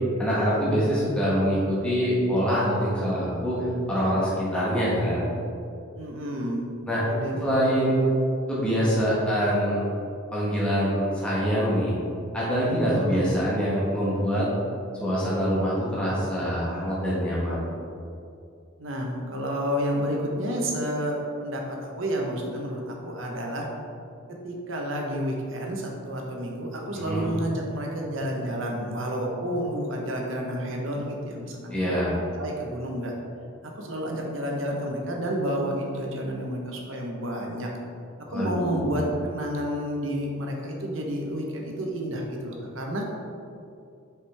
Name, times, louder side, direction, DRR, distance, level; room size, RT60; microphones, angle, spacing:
voice 1, 0.2-5.3 6.9-7.0 7.4-8.0 8.5-9.8 10.3-11.9 12.3-14.5 15.0-17.6 26.9-27.3 31.7-32.1 38.3-39.2, equal, 5° left, -8 dB, 1.3 m, -25 dB
voice 2, 5.9-6.6 7.0-7.9 13.1-13.3 18.8-23.7 24.4-33.1 33.7-37.7 38.3-43.0, equal, 65° right, 0 dB, 0.9 m, -30 dB
5.5 x 5.0 x 3.4 m, 2.5 s
head